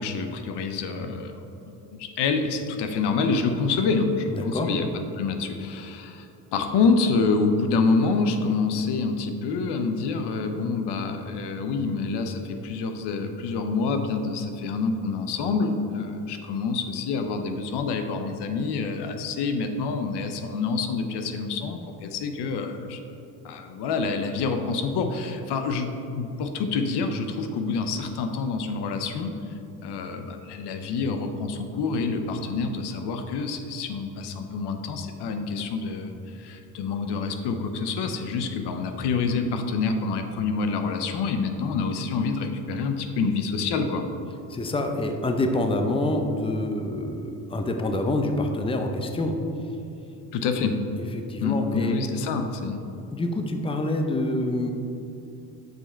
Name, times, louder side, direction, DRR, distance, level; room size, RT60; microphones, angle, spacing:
voice 1, 0.0-4.9 5.1-23.0 23.4-25.9 26.1-44.0 50.3-50.8 51.4-52.8, left 4 dB, 70° left, 6 dB, 0.7 m, -27 dB
voice 2, 4.3-4.7 44.5-49.4 51.0-52.1 53.1-54.7, left 1 dB, 15° left, 5 dB, 0.6 m, -27 dB
6.5 x 5.0 x 4.4 m, 2.8 s
supercardioid pair, 75°, 42 cm